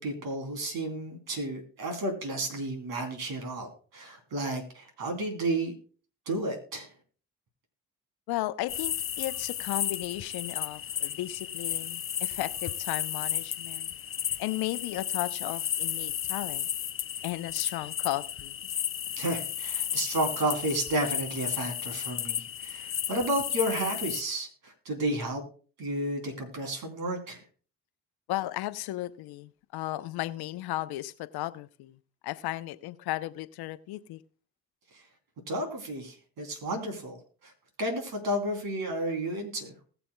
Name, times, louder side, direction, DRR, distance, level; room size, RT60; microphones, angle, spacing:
voice 1, 0.0-5.7 6.3-6.9 19.2-25.4 25.8-27.4 34.9-35.0 35.5-37.5 37.8-39.7, right 1 dB, 70° right, 3.2 m, -32 dB
voice 2, 8.3-13.9 14.4-16.7 17.2-18.5 28.3-34.2, left 16 dB, 75° left, 0.7 m, -35 dB
sound 1, 8.7-24.2, left 10 dB, 35° left, 0.5 m, -33 dB
20.0 x 7.0 x 2.2 m
hypercardioid pair, 45°, 38 cm